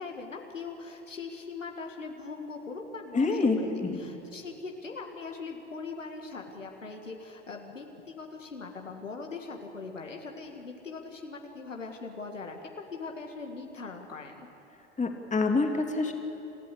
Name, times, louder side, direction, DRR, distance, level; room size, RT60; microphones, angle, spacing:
voice 1, 0.0-14.5, left 4 dB, 90° left, 2 dB, 1.8 m, -41 dB
voice 2, 3.1-3.9 15.0-16.1, left 3 dB, 20° left, 3 dB, 2.8 m, -26 dB
28.5 x 15.0 x 8.4 m, 3.0 s
figure-of-eight pair, 75°, 37 cm